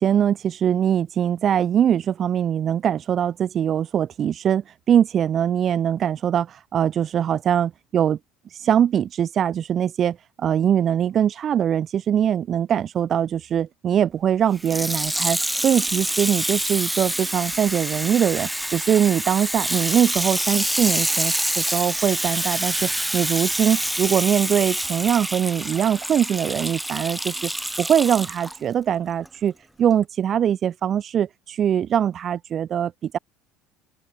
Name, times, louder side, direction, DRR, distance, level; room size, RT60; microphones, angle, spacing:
voice 1, 0.0-8.2 8.5-27.5 27.8-29.5 29.8-33.2, right 9 dB, 40° right, 1.2 m, -22 dB
Water tap faucet / Sink (filling or washing), 14.6-28.6 29.2-29.3, right 1 dB, 5° right, 0.7 m, -26 dB
open air
supercardioid pair, 110°, 0 cm